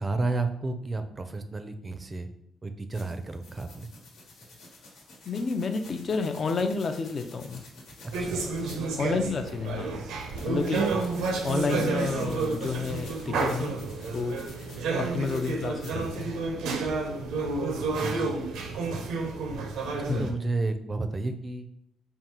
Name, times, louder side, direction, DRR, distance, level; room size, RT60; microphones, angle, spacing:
voice 1, 0.0-2.3 2.6-3.9 8.2-8.7 10.9-11.0 17.9-19.0 19.9-21.7, right 2 dB, 30° right, 8 dB, 0.4 m, -32 dB
sound 1, 2.9-8.9 9.2-15.0 15.2-16.2, left 2 dB, 85° left, 1.3 m, -50 dB
voice 2, 5.3-7.6 9.0-10.0 10.5-10.8 11.4-13.8 14.1-14.5 15.0-16.3 20.1-20.3, left 4 dB, 45° left, 7 dB, 0.4 m, -30 dB
sound 2, 8.1-20.3, right 3 dB, 85° right, 0.6 m, -30 dB
3.7 x 2.3 x 4.3 m, 0.74 s
cardioid pair, 90°, 0 cm